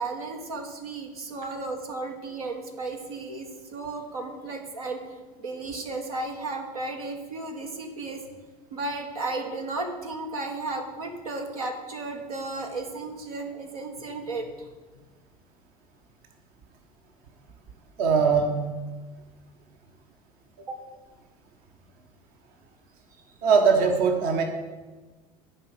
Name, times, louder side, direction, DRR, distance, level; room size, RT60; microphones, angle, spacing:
voice 1, 0.0-8.2 8.7-14.7 20.6-20.8, right 3 dB, 75° right, 3 dB, 1.5 m, -34 dB
voice 2, 18.0-18.7 23.4-24.4, right 5 dB, 50° right, 4 dB, 1.3 m, -21 dB
11.0 x 5.4 x 7.8 m, 1.3 s
figure-of-eight pair, 70°, 19 cm